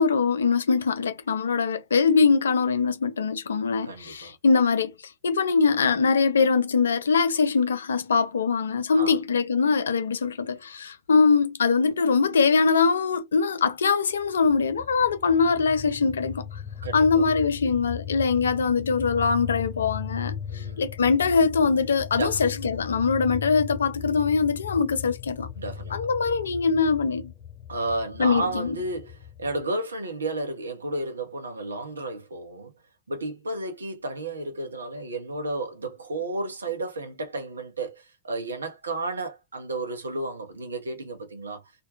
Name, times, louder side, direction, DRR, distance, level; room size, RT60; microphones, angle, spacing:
voice 1, 0.0-4.9 5.2-16.6 16.9-25.5 25.9-27.3 28.2-28.8, left 5 dB, 70° left, 0.4 m, -22 dB
voice 2, 3.8-4.4 8.9-9.2 16.8-17.2 20.5-20.8 22.1-22.5 25.6-26.0 27.7-32.7 33.1-41.6, right 2 dB, 75° right, 0.7 m, -32 dB
sound 1, 14.2-29.6, left 8 dB, 20° left, 0.9 m, -38 dB
2.5 x 2.1 x 2.6 m
figure-of-eight pair, 90°, 0 cm